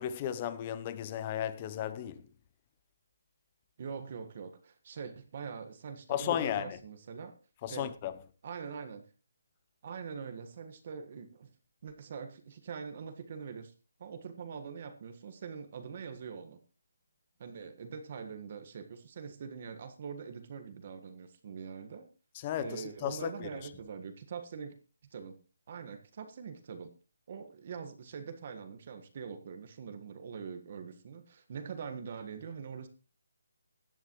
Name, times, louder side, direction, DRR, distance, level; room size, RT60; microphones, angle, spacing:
voice 1, 0.0-2.3 6.1-6.8 7.6-8.2 22.3-23.6, left 10 dB, 25° left, 0.8 m, -35 dB
voice 2, 3.8-7.4 7.7-7.9 8.4-9.1 9.8-11.5 11.8-13.7 14.0-16.6 17.4-22.1 22.6-24.7 25.1-25.4 25.7-26.9 27.3-32.9, right 6 dB, 40° right, 1.5 m, -43 dB
17.0 x 11.0 x 3.1 m
hypercardioid pair, 165°, 0 cm